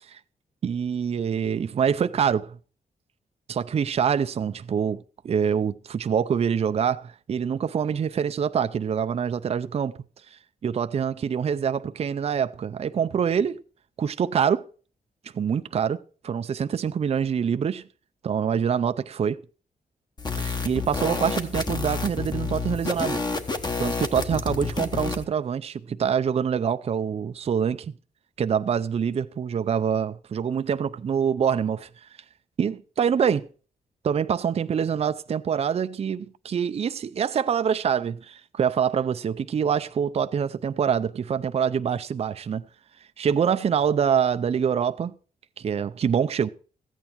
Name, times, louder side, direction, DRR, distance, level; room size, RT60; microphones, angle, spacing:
voice 1, 0.6-2.6 3.5-10.0 10.3-13.6 14.0-14.7 15.3-17.8 18.2-19.4 20.4-23.2 23.8-27.9 28.4-32.1 32.6-33.5 34.0-42.7 43.2-45.1 45.6-46.5, right 7 dB, 40° right, 0.5 m, -25 dB
sound 1, 20.2-25.2, left 4 dB, 25° left, 1.2 m, -29 dB
15.0 x 9.0 x 4.6 m
wide cardioid pair, 160°, 16 cm